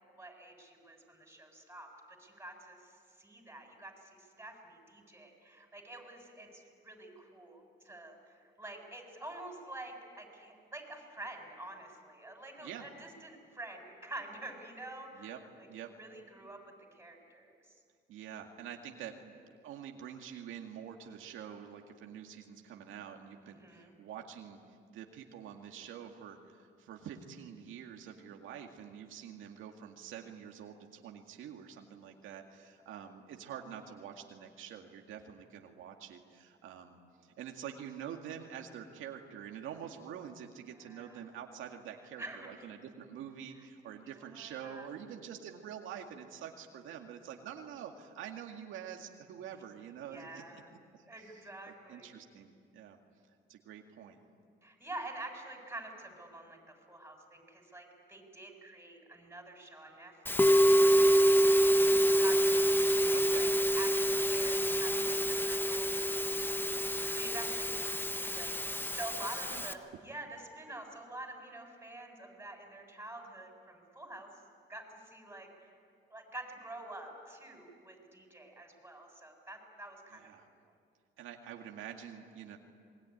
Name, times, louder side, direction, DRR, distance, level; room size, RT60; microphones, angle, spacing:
voice 1, 0.1-2.9 3.2-15.3 15.6-17.8 23.6-23.9 40.8-41.2 42.2-42.9 43.6-43.7 44.0-44.9 50.0-50.7 51.1-52.1 54.6-63.5 63.8-74.3 74.7-75.7 76.1-80.2 80.5-80.6, right 2 dB, 10° right, 3 dB, 7.3 m, -48 dB
voice 2, 18.1-19.4 19.6-24.6 24.9-50.4 51.2-51.3 51.9-53.0 53.5-54.2 63.1-63.5 69.5-69.8 80.1-80.5 81.2-82.6, right 9 dB, 90° right, 2 dB, 2.2 m, -46 dB
Musical instrument, 60.3-69.7, equal, 10° left, 1.4 m, -27 dB
27.0 x 21.5 x 10.0 m, 2.1 s
cardioid pair, 90°, 20 cm